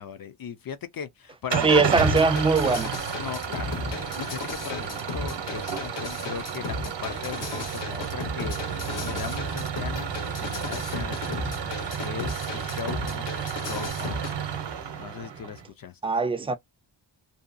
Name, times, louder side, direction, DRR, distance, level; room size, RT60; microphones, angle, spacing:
voice 1, 0.0-2.3 3.2-13.3 13.6-14.4 15.0-16.1, left 7 dB, 50° left, 0.4 m, -38 dB
Engine starting / Idling, 1.5-15.7, right 7 dB, 65° right, 0.7 m, -32 dB
voice 2, 1.6-2.9 16.0-16.6, right 4 dB, 15° right, 0.3 m, -21 dB
sound 1, 2.0-14.3, left 3 dB, 70° left, 1.0 m, -35 dB
2.7 x 2.2 x 2.5 m
wide cardioid pair, 155°, 45 cm